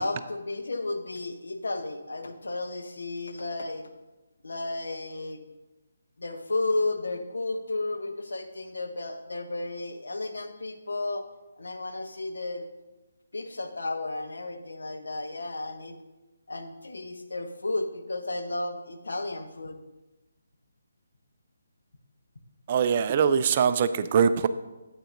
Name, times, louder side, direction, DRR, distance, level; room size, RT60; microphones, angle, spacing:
voice 1, 0.0-3.9 4.4-5.4 6.2-11.3 11.6-12.7 13.3-16.0 16.5-19.8, left 2 dB, 75° left, 7 dB, 0.8 m, -33 dB
voice 2, 22.7-24.5, right 7 dB, 35° right, 12 dB, 0.3 m, -22 dB
8.7 x 8.1 x 2.6 m, 1.1 s
figure-of-eight pair, 145°, 0 cm